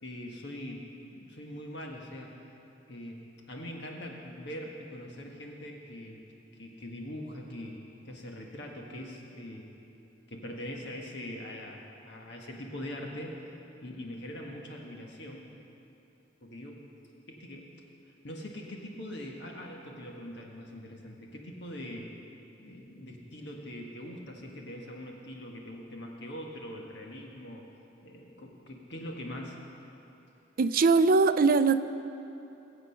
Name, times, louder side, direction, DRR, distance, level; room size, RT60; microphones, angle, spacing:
voice 1, 0.0-2.3 2.9-3.2 3.5-6.2 6.6-7.8 8.0-9.7 10.3-13.3 13.8-15.5 16.4-16.8 17.3-17.7 18.2-22.1 22.6-27.6 28.0-29.6, left 1 dB, 65° left, 0 dB, 1.4 m, -42 dB
voice 2, 30.6-31.8, right 4 dB, 50° right, 12 dB, 0.5 m, -21 dB
21.5 x 7.8 x 5.7 m, 2.9 s
head